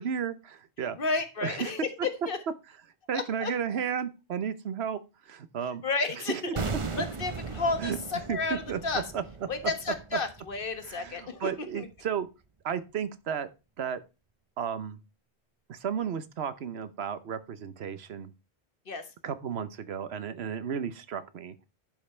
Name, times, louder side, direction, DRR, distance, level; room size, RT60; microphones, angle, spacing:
voice 1, 0.0-1.0 1.4-1.7 3.1-5.0 5.3-5.8 6.3-6.4 7.8-8.0 8.3-8.4 8.7-8.8 9.1-9.2 10.9-12.3 12.6-13.5 13.8-14.0 14.6-15.0 15.7-18.3 19.2-21.7, right 7 dB, 70° right, 14 dB, 1.1 m, -33 dB
voice 2, 1.0-2.4 3.1-3.5 5.8-6.5 7.0-9.1 9.5-11.9 18.9-19.1, left 3 dB, 55° left, 8 dB, 1.5 m, -32 dB
sound 1, 6.6-11.6 11.8-12.0, right 4 dB, 30° right, 0.8 m, -38 dB
11.0 x 5.3 x 4.3 m, 0.30 s
omnidirectional pair, 1.1 m